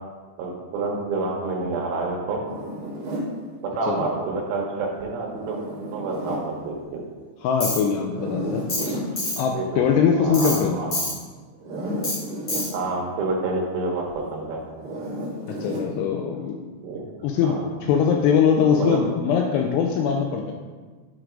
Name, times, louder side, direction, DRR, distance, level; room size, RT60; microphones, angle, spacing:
voice 1, 0.4-2.4 3.6-5.6 5.9-7.0 9.1-9.2 9.5-9.9 10.2-11.0 12.7-14.6 16.8-17.0 17.4-17.7 18.7-19.0, right 3 dB, 75° right, 0 dB, 2.9 m, -28 dB
Zipper (clothing), 2.5-3.3 5.3-6.5 8.0-9.1 11.5-12.7 14.8-15.9, equal, 45° right, 1.8 m, -32 dB
voice 2, 7.4-9.0 9.4-10.8 15.5-16.6 17.2-20.5, left 7 dB, 85° left, 2 dB, 2.4 m, -22 dB
Tools, 7.6-7.8 8.7-8.9 9.2-9.4 10.3-10.6 10.9-11.1 12.0-12.2 12.5-12.7, left 2 dB, 40° left, 1.7 m, -26 dB
9.1 x 3.3 x 5.0 m, 1.4 s
omnidirectional pair, 5.2 m